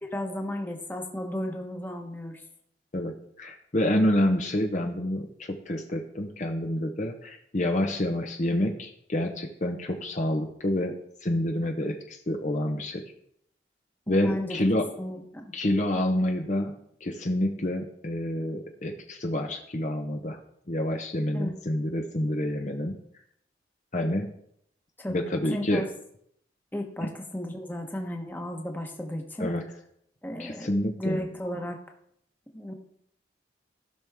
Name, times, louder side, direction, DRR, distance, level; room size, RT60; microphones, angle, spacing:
voice 1, 0.0-2.4 14.1-14.6 15.0-15.5 21.3-21.5 25.0-25.8 26.7-29.5 30.2-30.7 31.0-31.8 32.5-32.7, left 1 dB, 10° left, 2 dB, 1.1 m, -34 dB
voice 2, 2.9-10.9 11.2-13.0 14.1-14.9 15.5-16.7 17.0-20.4 20.7-23.0 23.9-24.3 25.1-25.9 29.4-29.6 30.4-31.2, left 1 dB, 45° left, 3 dB, 0.8 m, -28 dB
15.5 x 6.0 x 3.5 m, 0.70 s
head